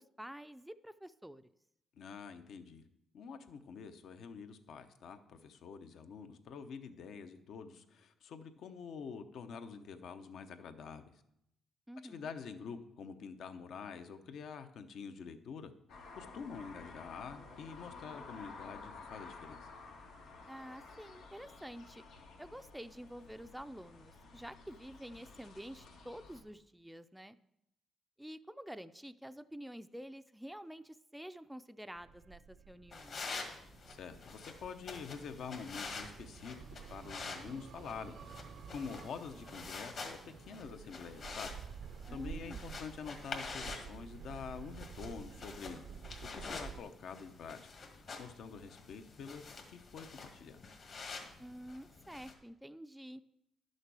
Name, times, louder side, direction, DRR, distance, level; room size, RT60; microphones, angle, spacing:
voice 1, 0.0-1.5 11.9-12.3 20.5-22.0 22.4-27.4 28.2-33.2 42.1-42.7 51.4-53.2, equal, 5° right, 11 dB, 0.4 m, -49 dB
voice 2, 2.0-2.8 3.1-11.0 12.0-15.7 16.2-19.7 33.9-40.2 40.5-41.6 42.1-45.8 46.3-47.6 47.9-50.6, left 6 dB, 70° left, 9 dB, 0.8 m, -47 dB
sound 1, 15.9-26.4, left 4 dB, 90° left, 1.6 m, -53 dB
sound 2, 31.9-46.8, right 7 dB, 65° right, 0.5 m, -51 dB
sound 3, 32.9-52.3, left 4 dB, 55° left, 1.6 m, -48 dB
11.0 x 6.5 x 4.8 m, 0.80 s
cardioid pair, 90°, 0 cm